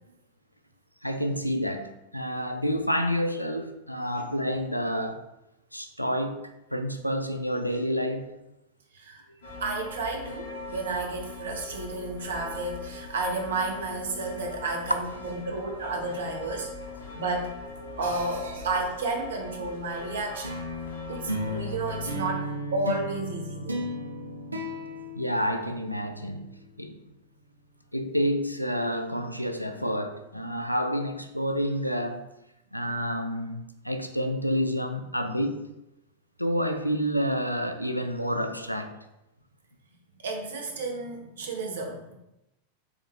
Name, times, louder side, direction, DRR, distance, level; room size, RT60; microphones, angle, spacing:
voice 1, 1.0-5.2 5.7-6.4 6.7-8.3 25.2-27.0 27.9-32.3 32.7-35.7 36.4-38.9, equal, 90° left, 7 dB, 0.4 m, -29 dB
sound 1, 9.4-22.2, left 2 dB, 65° left, 1.2 m, -41 dB
voice 2, 9.6-16.7 17.1-17.5 18.0-20.6 21.1-23.8 40.2-42.1, right 3 dB, 65° right, 1 dB, 0.9 m, -32 dB
sound 2, 20.4-26.0, equal, 80° right, 0.5 m, -34 dB
4.9 x 3.5 x 3.1 m, 0.90 s
figure-of-eight pair, 90°, 0 cm